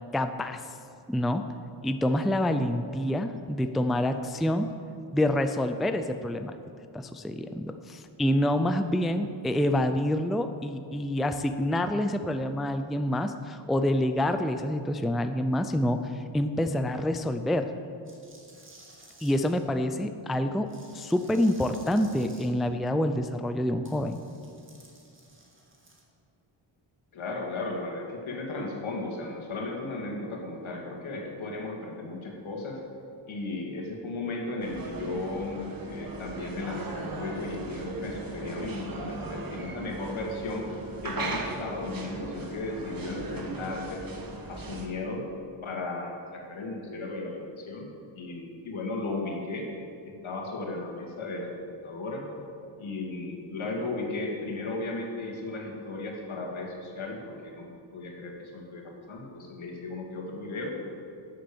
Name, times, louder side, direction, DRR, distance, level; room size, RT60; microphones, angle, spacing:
voice 1, 0.1-0.6 1.1-1.4 1.8-4.7 5.1-6.5 6.9-17.7 19.2-24.2, left 1 dB, ahead, 8 dB, 0.4 m, -27 dB
sound 1, 18.0-19.6 20.7-22.5 23.8-26.0, right 2 dB, 25° right, 2.2 m, -54 dB
voice 2, 27.1-32.8 33.3-40.6 41.0-44.0 44.5-45.2 45.6-47.9 48.1-49.7 50.2-52.3 52.8-60.7, left 2 dB, 80° left, -1 dB, 2.5 m, -35 dB
sound 2, 34.6-44.9, right 3 dB, 45° right, 1.5 m, -38 dB
12.0 x 7.5 x 7.1 m, 2.5 s
wide cardioid pair, 120°, 47 cm